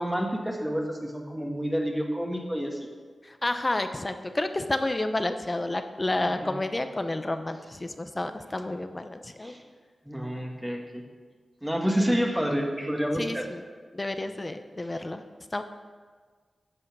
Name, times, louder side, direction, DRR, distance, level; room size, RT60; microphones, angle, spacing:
voice 1, 0.0-2.9 6.2-6.5 9.4-9.6 10.0-11.0 11.6-13.4, equal, 5° right, 1 dB, 1.4 m, -29 dB
voice 2, 3.2-9.5 11.9-12.1 13.1-13.6 13.9-15.2 15.5-15.6, left 2 dB, 30° left, 8 dB, 0.7 m, -30 dB
10.5 x 5.6 x 7.2 m, 1.5 s
wide cardioid pair, 80°, 0 cm